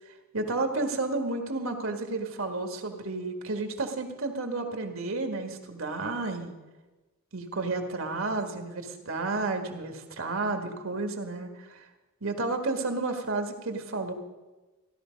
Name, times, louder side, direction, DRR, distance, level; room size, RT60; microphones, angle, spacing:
voice 1, 0.3-6.5 7.3-11.9 12.2-14.1, right 3 dB, 75° right, 5 dB, 1.7 m, -31 dB
16.0 x 12.0 x 5.2 m, 1.2 s
head